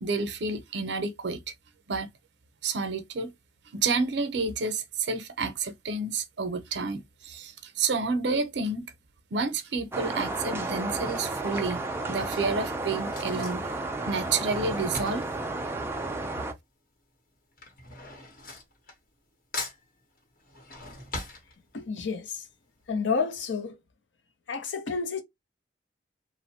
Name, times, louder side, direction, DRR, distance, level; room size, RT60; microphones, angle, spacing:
voice 1, 0.0-1.4 1.9-2.1 2.6-3.3 3.7-8.9 9.3-11.8 12.1-13.7 14.1-15.3, right 4 dB, 70° right, 0.6 m, -30 dB
Drawer open or close / Cutlery silverware, 9.5-9.9 10.8-16.6 16.9-19.3 19.5-22.1 22.5-22.6 22.8-22.9, left 2 dB, 50° left, 0.9 m, -42 dB
sound 1, 9.9-16.5, right 2 dB, 15° right, 0.4 m, -32 dB
voice 2, 21.7-22.4 22.9-23.8 24.5-25.2, left 5 dB, 85° left, 0.7 m, -30 dB
3.0 x 2.1 x 2.7 m
head